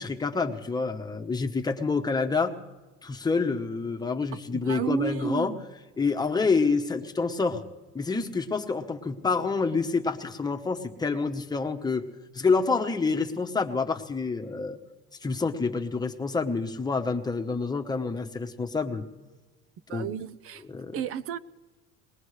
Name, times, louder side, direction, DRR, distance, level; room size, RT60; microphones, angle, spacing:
voice 1, 0.0-2.5 3.0-5.5 6.0-7.6 7.9-12.1 12.3-14.8 15.2-19.1 19.9-20.1 20.6-21.0, left 4 dB, 15° left, 4 dB, 1.0 m, -27 dB
voice 2, 4.3-5.6 19.9-20.6 20.9-21.4, right 7 dB, 45° right, 17 dB, 0.7 m, -32 dB
22.5 x 19.5 x 3.3 m, 1.2 s
cardioid pair, 140°, 30 cm